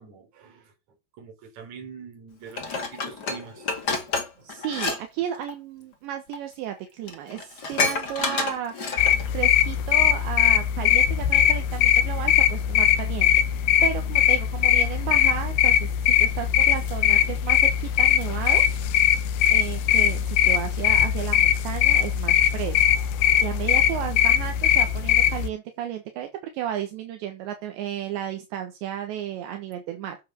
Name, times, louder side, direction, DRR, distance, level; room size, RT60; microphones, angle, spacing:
voice 1, 0.0-4.1 4.3-4.5 14.1-14.2 16.3-16.7 23.3-23.4, right 6 dB, 40° right, 4.0 m, -45 dB
Dishes pots and pans, 2.6-5.0 5.3-5.5 6.3-6.4 6.8-6.9 7.1-9.3 9.7-9.8, left 4 dB, 50° left, 1.2 m, -29 dB
voice 2, 4.4-8.7 9.3-18.6 19.5-22.8 23.4-30.2, right 10 dB, 70° right, 3.3 m, -33 dB
sound 1, 9.0-25.5, left 10 dB, 75° left, 2.5 m, -21 dB
10.5 x 7.5 x 7.5 m
omnidirectional pair, 5.6 m